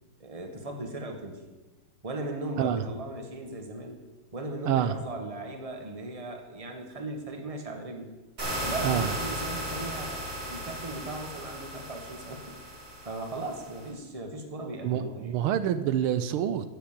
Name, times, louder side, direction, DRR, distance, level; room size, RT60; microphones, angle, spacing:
voice 1, 0.2-1.4 2.0-4.0 4.3-8.1 8.6-12.6 13.0-15.4, right 2 dB, 20° right, 4 dB, 1.6 m, -37 dB
sound 1, 8.4-13.9, equal, 50° right, 6.2 m, -36 dB
voice 2, 8.8-9.2 14.8-16.7, right 10 dB, 85° right, 12 dB, 1.6 m, -27 dB
15.5 x 7.0 x 7.4 m, 1.2 s
omnidirectional pair, 2.3 m